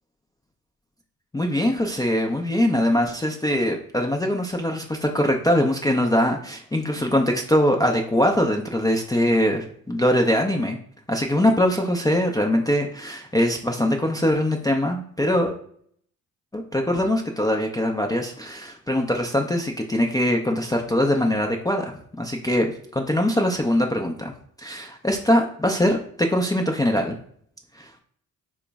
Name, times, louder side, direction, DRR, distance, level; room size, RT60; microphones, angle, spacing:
voice 1, 1.3-10.8 11.1-15.6 16.5-24.3 24.6-27.2, left 1 dB, 10° left, 0 dB, 0.4 m, -22 dB
3.7 x 2.0 x 3.4 m, 0.63 s
supercardioid pair, 55°, 35 cm